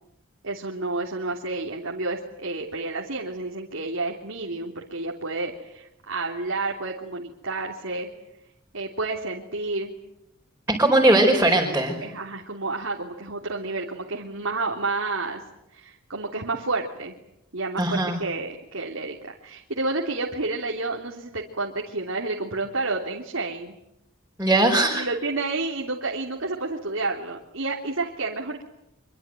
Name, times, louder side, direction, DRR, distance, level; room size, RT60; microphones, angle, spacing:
voice 1, 0.4-8.1 8.7-10.0 12.0-15.4 15.7-17.2 17.5-23.8 24.9-28.6, right 3 dB, 75° right, -1 dB, 3.3 m, -30 dB
voice 2, 10.8-12.0 17.8-18.2 24.4-25.0, right 1 dB, 10° right, -2 dB, 5.0 m, -19 dB
26.0 x 24.5 x 9.2 m, 0.82 s
head